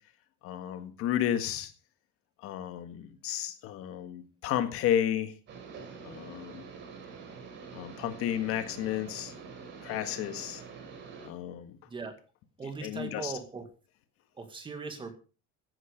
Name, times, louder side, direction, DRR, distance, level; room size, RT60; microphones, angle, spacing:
voice 1, 0.4-1.7 2.4-5.3 6.0-6.6 7.7-9.3 9.8-10.6 11.2-11.8 12.8-13.3, left 10 dB, 50° left, 9 dB, 1.8 m, -32 dB
sound 1, 5.5-11.3, right 5 dB, 40° right, 4.2 m, -46 dB
voice 2, 11.9-12.2 12.6-13.6 14.4-15.1, right 4 dB, 15° right, 8 dB, 2.0 m, -39 dB
15.0 x 10.5 x 5.1 m, 0.35 s
cardioid pair, 175°, 29 cm